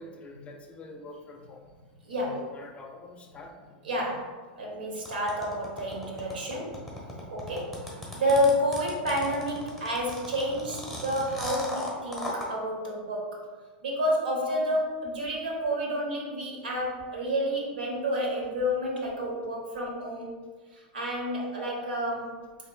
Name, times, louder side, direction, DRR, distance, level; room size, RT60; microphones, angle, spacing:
voice 1, 0.0-1.6 2.5-3.5, left 2 dB, 25° left, 3 dB, 0.5 m, -45 dB
voice 2, 2.0-2.5 3.8-6.8 7.3-7.7 8.1-13.4 13.8-20.3 20.7-22.3, equal, 90° right, -1 dB, 0.9 m, -29 dB
sound 1, 5.1-12.5, left 1 dB, 5° right, 1.1 m, -37 dB
4.2 x 3.1 x 2.3 m, 1.4 s
hypercardioid pair, 110°, 5 cm